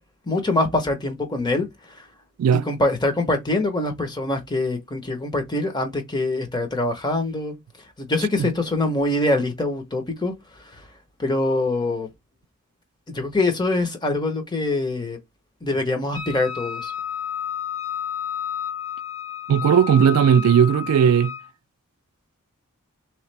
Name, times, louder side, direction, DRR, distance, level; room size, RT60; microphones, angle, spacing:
voice 1, 0.3-1.7 2.7-7.5 8.0-10.3 11.2-12.1 13.1-15.2 15.6-16.9, left 2 dB, 20° left, 0.9 m, -24 dB
Wind instrument woodwind instrument, 16.1-21.5, left 9 dB, 70° left, 0.8 m, -31 dB
voice 2, 19.5-21.3, right 8 dB, 90° right, 0.3 m, -17 dB
3.6 x 3.2 x 3.2 m
head